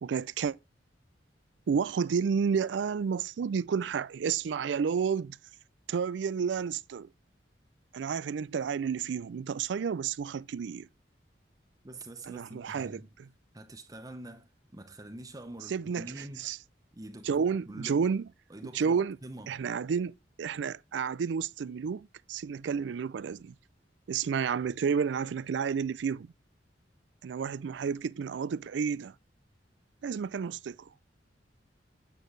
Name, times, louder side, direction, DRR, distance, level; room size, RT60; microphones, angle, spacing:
voice 1, 0.0-0.6 1.7-5.4 5.9-7.1 7.9-10.9 12.3-13.3 15.7-16.6 17.2-18.3 18.7-19.2 19.5-23.5 24.1-26.3 27.2-29.1 30.0-30.9, right 6 dB, 75° right, 0.4 m, -31 dB
voice 2, 11.8-13.1 13.5-16.5 16.9-18.1 18.5-19.6, right 1 dB, 20° right, 0.7 m, -45 dB
9.0 x 6.4 x 3.1 m
head